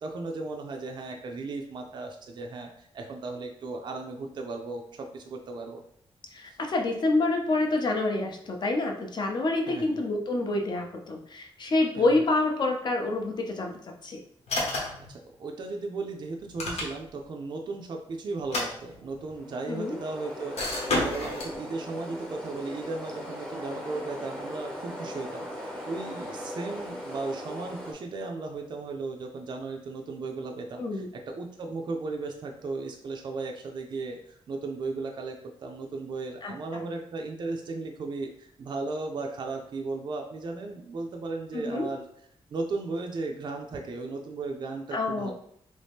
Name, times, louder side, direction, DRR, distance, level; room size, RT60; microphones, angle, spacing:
voice 1, 0.0-5.8 9.7-10.0 12.0-12.1 15.1-42.0 42.5-45.3, right 3 dB, 45° right, 2 dB, 0.4 m, -36 dB
voice 2, 6.3-13.7 14.0-14.2 19.7-20.0 30.8-31.1 36.4-36.8 41.5-41.9 44.9-45.3, left 2 dB, 45° left, 2 dB, 0.6 m, -27 dB
sound 1, 14.5-15.1 16.4-17.2 18.4-19.3 20.6-21.5, left 2 dB, 90° left, 1.1 m, -31 dB
sound 2, 19.2-27.9, equal, 5° left, 0.6 m, -39 dB
3.1 x 2.7 x 3.4 m, 0.66 s
wide cardioid pair, 155°, 10 cm